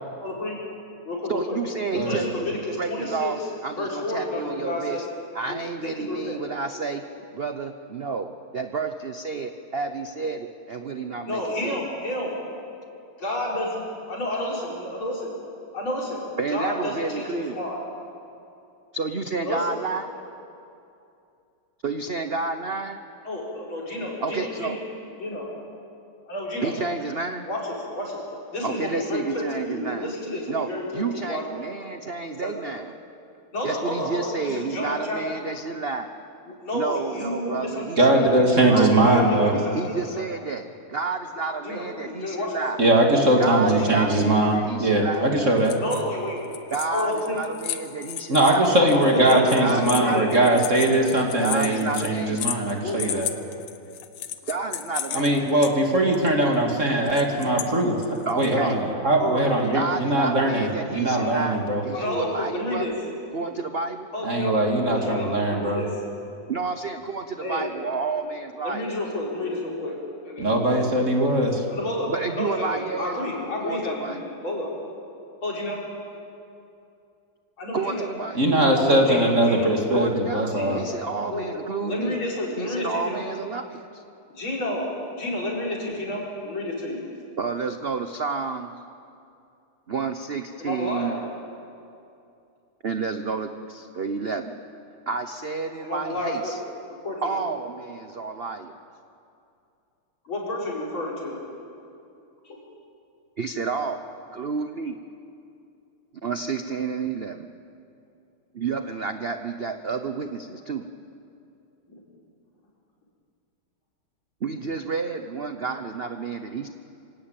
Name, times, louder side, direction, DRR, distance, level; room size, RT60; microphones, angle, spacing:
voice 1, 0.2-0.6 1.0-1.6 2.1-3.3 3.8-5.0 5.5-6.4 11.3-12.3 13.2-15.3 15.7-17.8 19.4-19.8 23.2-24.8 25.2-25.5 26.3-26.7 27.5-28.2 28.5-31.7 32.4-32.5 33.5-35.2 36.5-38.1 38.7-40.3 41.6-42.6 43.6-44.0 45.8-46.6 46.9-47.4 48.4-50.3 52.8-53.0 59.2-59.5 61.1-61.4 61.9-62.9 64.1-64.6 64.9-65.9 67.4-67.7 68.6-70.0 70.2-71.1 71.7-74.7 75.4-75.8 77.6-78.1 78.8-79.7 80.5-80.8 81.3-81.5 81.8-83.3 84.3-87.0 90.6-91.2 95.8-96.6 97.0-97.3 100.2-101.4 102.4-102.6 111.9-112.0, left 1 dB, 70° left, -4 dB, 5.7 m, -30 dB
voice 2, 1.3-3.4 3.6-5.0 5.3-7.0 7.3-11.8 16.4-17.6 18.9-20.1 21.8-23.0 24.2-24.8 26.6-27.5 28.6-33.0 33.6-36.1 36.7-39.0 39.5-42.8 43.4-45.3 46.7-48.7 49.6-50.6 51.4-52.5 54.5-55.6 58.3-58.8 59.7-61.6 61.8-62.9 63.3-64.1 66.5-68.9 72.1-73.2 73.6-74.2 77.7-78.4 79.9-82.2 82.6-84.0 87.4-88.8 89.9-91.2 92.8-94.6 95.1-96.6 97.2-98.8 103.4-104.0 104.3-105.0 106.2-107.5 108.5-110.9 114.4-116.7, right 4 dB, 65° right, 7 dB, 0.6 m, -30 dB
voice 3, 38.0-39.5 42.8-45.8 48.3-53.3 55.1-58.0 58.3-61.8 64.2-65.8 70.4-71.6 78.4-80.8, right 1 dB, 35° right, 1 dB, 2.5 m, -21 dB
sound 1, 45.6-46.2 46.4-55.7 56.1-56.3 57.1-57.7 58.0-58.5, left 10 dB, 90° left, 1.9 m, -34 dB
26.5 x 17.0 x 8.9 m, 2.6 s
omnidirectional pair, 2.3 m